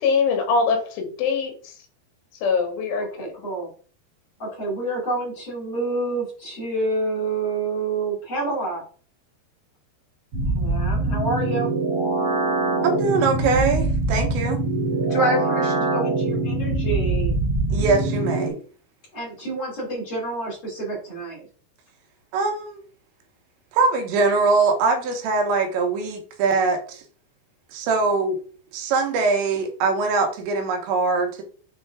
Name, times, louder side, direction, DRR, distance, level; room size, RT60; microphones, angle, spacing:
voice 1, 0.0-1.7 2.4-3.3, left 5 dB, 80° left, 4 dB, 3.8 m, -23 dB
voice 2, 3.2-3.7 4.4-8.8 10.5-11.7 15.1-17.3 19.1-21.5, right 2 dB, 35° left, -5 dB, 2.4 m, -27 dB
sound 1, 10.3-18.5, right 2 dB, 50° right, 1.9 m, -23 dB
voice 3, 12.8-14.6 17.7-18.6 22.3-22.8 23.7-27.0 27.7-28.4 28.7-31.4, right 4 dB, 75° right, 4 dB, 3.2 m, -22 dB
8.0 x 3.7 x 3.5 m, 0.41 s
omnidirectional pair, 5.5 m